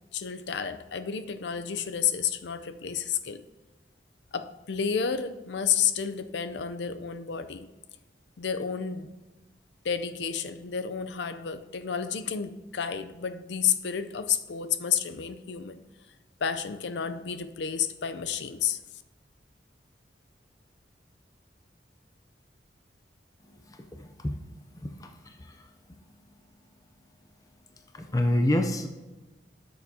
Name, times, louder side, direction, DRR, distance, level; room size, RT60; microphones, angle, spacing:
voice 1, 0.1-3.4 4.3-7.7 8.4-9.1 9.8-15.8 16.4-18.8, left 7 dB, 85° left, 0.5 m, -30 dB
voice 2, 23.7-24.3 24.8-25.7 27.9-28.9, left 1 dB, 20° left, 0.5 m, -28 dB
13.0 x 6.6 x 2.8 m
head